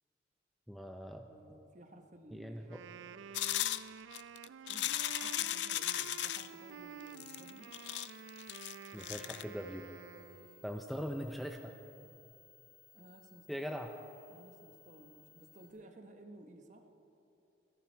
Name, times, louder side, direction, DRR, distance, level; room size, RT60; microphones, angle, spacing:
voice 1, 0.7-1.3 2.3-2.8 8.9-9.9 10.6-11.7 13.5-13.9, equal, ahead, 4 dB, 0.5 m, -41 dB
voice 2, 1.3-3.5 4.7-7.7 12.9-13.7 14.3-16.9, right 1 dB, 40° right, 5 dB, 1.1 m, -56 dB
Wind instrument woodwind instrument, 2.6-10.7, right 7 dB, 90° right, 0.4 m, -50 dB
sound 1, 3.3-6.5 7.2-9.4, left 13 dB, 70° left, 0.4 m, -36 dB
sound 2, 6.3-15.7, left 8 dB, 90° left, 4.5 m, -62 dB
27.5 x 11.0 x 4.5 m, 2.9 s
head